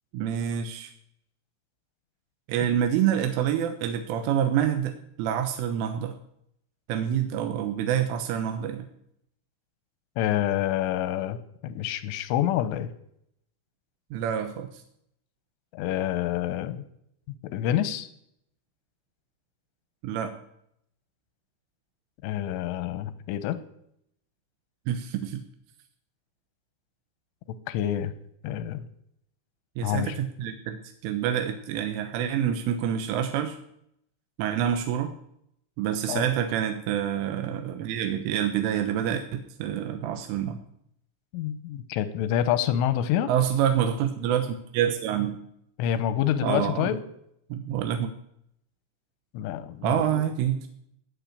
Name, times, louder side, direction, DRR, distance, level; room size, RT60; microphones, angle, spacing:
voice 1, 0.1-0.9 2.5-4.9 5.2-6.2 6.9-8.9 14.1-14.7 20.0-20.3 24.9-25.4 29.8-30.8 31.0-33.6 34.4-35.1 35.8-40.6 43.3-45.4 46.4-46.9 47.5-48.1 49.8-50.7, right 9 dB, 90° right, 6 dB, 3.5 m, -27 dB
voice 2, 10.2-11.4 11.6-12.9 15.7-16.8 17.4-18.1 22.2-23.6 27.7-28.1 28.4-28.9 29.8-30.2 36.1-36.3 41.3-43.3 45.8-47.0 49.3-50.2, left 11 dB, 85° left, 12 dB, 3.3 m, -27 dB
16.5 x 6.8 x 9.9 m, 0.73 s
omnidirectional pair, 5.7 m